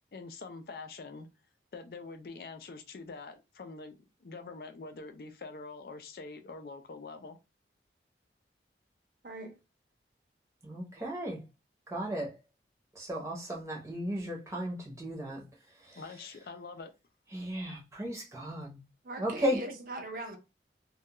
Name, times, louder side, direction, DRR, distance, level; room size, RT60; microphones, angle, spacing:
voice 1, 0.1-1.3 1.7-7.4 16.0-16.9, left 3 dB, 55° left, 0.4 m, -45 dB
voice 2, 10.6-11.4 11.9-12.4 12.9-15.4 15.8-16.0 17.3-18.8 19.2-19.6, equal, 15° right, 0.7 m, -35 dB
voice 3, 19.0-20.4, right 2 dB, 50° right, 0.6 m, -40 dB
2.3 x 2.2 x 2.9 m
head